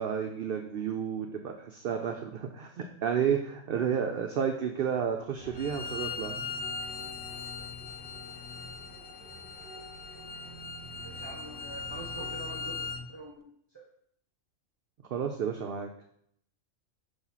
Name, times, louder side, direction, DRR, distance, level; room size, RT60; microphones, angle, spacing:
voice 1, 0.0-6.4 15.1-15.9, right 7 dB, 60° right, 4 dB, 0.6 m, -31 dB
sound 1, 5.4-13.0, left 1 dB, 5° right, 2.6 m, -46 dB
Bowed string instrument, 5.5-13.0, left 5 dB, 65° left, 0.5 m, -40 dB
voice 2, 11.0-13.8, right 2 dB, 25° right, -2 dB, 0.8 m, -46 dB
6.0 x 3.2 x 5.5 m, 0.68 s
omnidirectional pair, 1.3 m